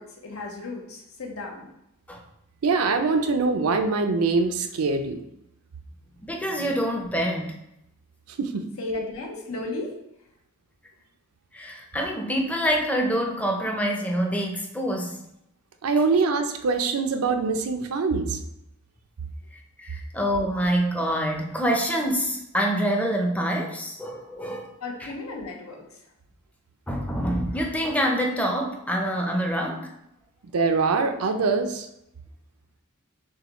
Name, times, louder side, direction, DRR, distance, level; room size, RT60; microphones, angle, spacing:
voice 1, 0.0-1.7 8.8-9.9 24.8-26.0, left 2 dB, 75° left, 1 dB, 0.9 m, -34 dB
voice 2, 2.6-5.3 8.3-8.6 15.8-18.4 30.5-31.9, right 4 dB, 85° right, 6 dB, 0.5 m, -23 dB
voice 3, 6.2-7.6 11.5-15.2 19.8-24.7 25.0-25.1 26.9-29.9, equal, 5° left, 1 dB, 0.6 m, -26 dB
6.3 x 2.3 x 2.9 m, 0.82 s
head